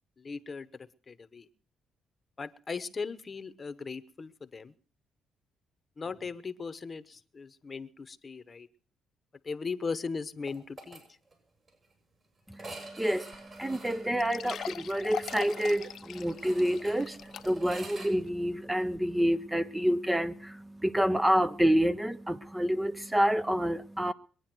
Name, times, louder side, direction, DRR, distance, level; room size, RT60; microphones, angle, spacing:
voice 1, 0.2-1.5 2.4-4.7 6.0-8.7 9.4-11.0, left 4 dB, 35° left, 1.0 m, -38 dB
sound 1, 10.5-11.0 11.3-11.4 11.7-11.8 12.5-18.1, right 2 dB, 40° right, 7.4 m, -47 dB
voice 2, 13.0-13.3 13.6-24.1, equal, 10° right, 0.6 m, -28 dB
sound 2, 13.3-13.4 13.7-13.8 14.2-17.8 18.3-18.4 18.9-19.0, left 9 dB, 65° left, 0.7 m, -41 dB
22.5 x 9.8 x 6.1 m
cardioid pair, 90°, 0 cm